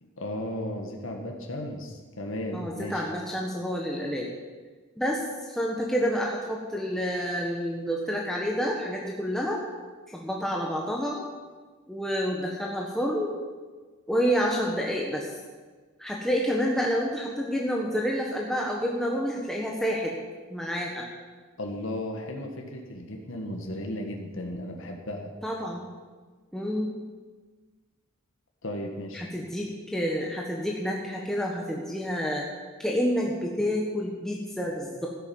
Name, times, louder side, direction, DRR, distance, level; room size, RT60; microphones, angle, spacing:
voice 1, 0.0-3.1 21.6-25.3 28.6-29.3, left 1 dB, 65° left, 2 dB, 1.9 m, -35 dB
voice 2, 2.5-4.3 5.0-5.2 5.5-9.6 10.1-11.2 11.9-13.3 14.1-15.3 16.0-20.1 20.5-21.0 25.4-25.9 26.5-26.9 29.1-32.4 32.8-35.1, equal, ahead, -2 dB, 1.4 m, -28 dB
13.0 x 10.5 x 7.2 m, 1.4 s
head